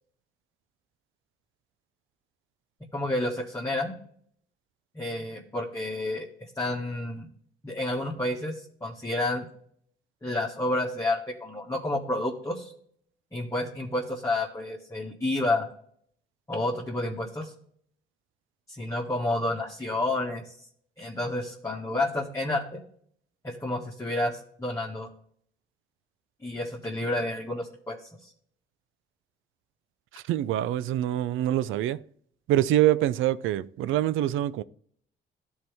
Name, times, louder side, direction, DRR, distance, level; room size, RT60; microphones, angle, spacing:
voice 1, 2.8-4.0 4.9-6.3 6.5-7.3 7.6-9.5 10.2-12.7 13.3-15.7 16.5-17.5 18.7-20.5 21.0-22.8 23.4-25.1 26.4-28.3, left 2 dB, 15° left, 1.6 m, -30 dB
voice 2, 30.1-32.0 32.5-34.6, right 13 dB, 85° right, 0.4 m, -25 dB
13.0 x 4.6 x 3.5 m
cardioid pair, 90°, 20 cm